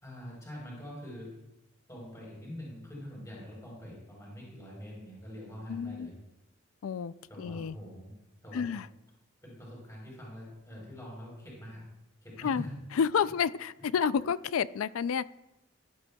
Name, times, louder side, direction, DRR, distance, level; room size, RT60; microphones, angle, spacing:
voice 1, 0.0-1.3 1.9-6.1 7.3-8.1 8.4-8.7 9.4-11.8 12.2-12.7, equal, 15° left, -4 dB, 3.9 m, -44 dB
voice 2, 5.7-6.1 6.8-7.7 8.5-8.9 12.4-12.6 13.0-15.3, left 7 dB, 80° left, 17 dB, 0.4 m, -30 dB
15.0 x 12.0 x 2.3 m, 0.93 s
head